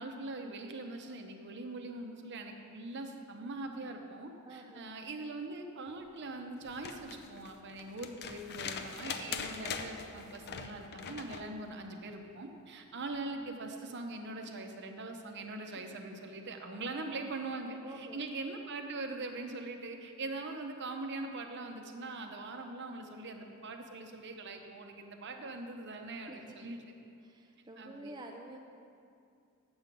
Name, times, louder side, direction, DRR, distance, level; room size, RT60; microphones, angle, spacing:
voice 1, 0.0-26.8 27.8-28.1, right 2 dB, 55° right, 4 dB, 0.8 m, -42 dB
voice 2, 4.4-4.9 17.8-18.2 26.3-26.6 27.2-28.6, right 2 dB, 20° right, 1 dB, 0.4 m, -48 dB
sound 1, 6.6-11.5 13.1-13.2, left 6 dB, 50° left, 0.5 m, -42 dB
7.9 x 7.4 x 5.3 m, 2.5 s
head